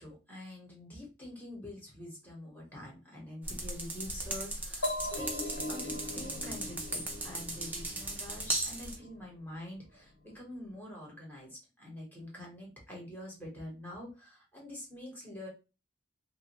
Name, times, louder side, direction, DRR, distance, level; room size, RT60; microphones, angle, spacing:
voice 1, 0.0-15.5, left 1 dB, 10° left, -3 dB, 1.0 m, -46 dB
sound 1, 3.4-9.0, right 2 dB, 10° right, 0.4 m, -37 dB
sound 2, 4.8-8.5, left 1 dB, 80° left, 0.8 m, -39 dB
2.5 x 2.2 x 2.9 m, 0.30 s
head